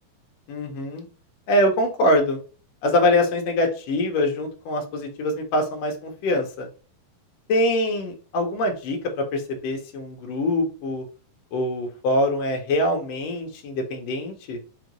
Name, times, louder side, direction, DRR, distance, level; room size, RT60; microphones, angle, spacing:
voice 1, 0.5-1.1 1.5-2.4 2.8-6.7 7.5-11.0 11.5-14.6, left 1 dB, 70° left, 2 dB, 1.6 m, -24 dB
5.5 x 2.5 x 3.0 m, 0.39 s
omnidirectional pair, 4.0 m